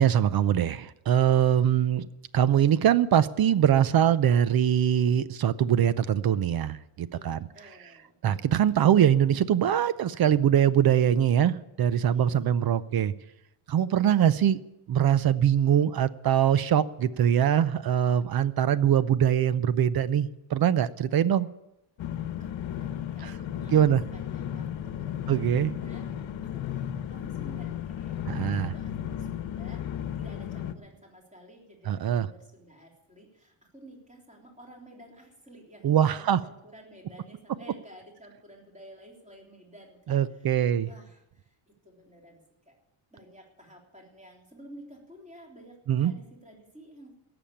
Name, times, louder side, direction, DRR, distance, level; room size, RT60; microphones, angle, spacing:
voice 1, 0.0-2.1 2.3-7.5 8.2-13.1 13.7-14.6 14.9-21.5 23.2-23.3 23.7-24.0 25.3-25.7 28.3-28.7 31.9-32.3 35.8-36.4 40.1-40.9 45.9-46.1, right 9 dB, 50° right, 16 dB, 0.6 m, -23 dB
voice 2, 7.1-8.2 12.1-12.7 22.2-26.0 26.4-29.8 30.2-42.4 42.7-42.8 43.1-47.1, right 1 dB, 15° right, -1 dB, 3.5 m, -52 dB
sound 1, 22.0-30.7, left 10 dB, 65° left, 1.1 m, -34 dB
17.5 x 7.1 x 8.6 m, 0.89 s
cardioid pair, 145°, 49 cm